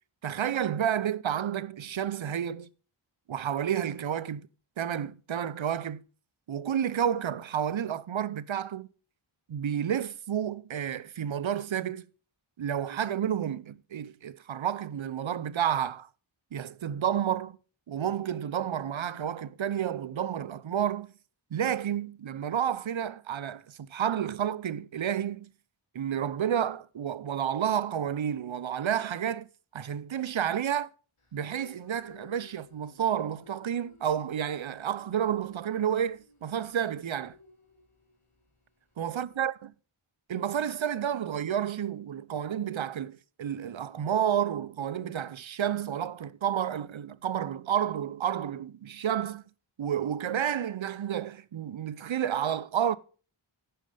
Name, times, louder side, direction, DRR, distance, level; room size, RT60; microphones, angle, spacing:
voice 1, 0.2-2.7 3.3-4.5 4.8-6.0 6.5-8.9 9.5-12.0 12.6-16.1 16.5-17.6 17.9-21.1 21.5-25.5 25.9-29.5 29.7-30.9 31.3-37.3 39.0-39.5 40.3-49.4 49.8-53.0, right 9 dB, 70° right, 0.6 m, -30 dB
sound 1, 31.2-39.4, left 4 dB, 80° left, 4.2 m, -58 dB
10.5 x 9.3 x 3.3 m
wide cardioid pair, 45°, 49 cm